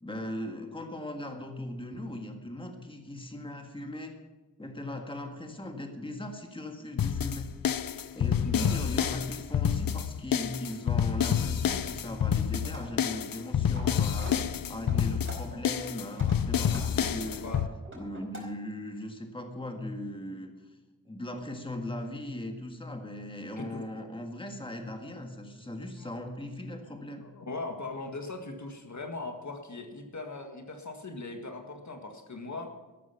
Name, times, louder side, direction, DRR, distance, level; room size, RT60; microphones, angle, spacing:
voice 1, 0.0-4.2 4.6-7.6 8.1-17.5 17.9-20.8 21.1-27.3, left 1 dB, 15° left, 4 dB, 1.7 m, -39 dB
sound 1, 7.0-17.7, left 8 dB, 75° left, 0.6 m, -28 dB
voice 2, 8.4-8.8 17.4-17.6 23.6-23.8 26.0-26.1 27.2-32.7, left 3 dB, 55° left, 4 dB, 1.8 m, -39 dB
sound 2, 12.6-12.9 13.3-13.8 14.1-14.3 14.9-15.6 16.0-18.4, right 1 dB, 35° right, 4.5 m, -45 dB
13.5 x 12.5 x 5.8 m, 1.2 s
wide cardioid pair, 110°, 35 cm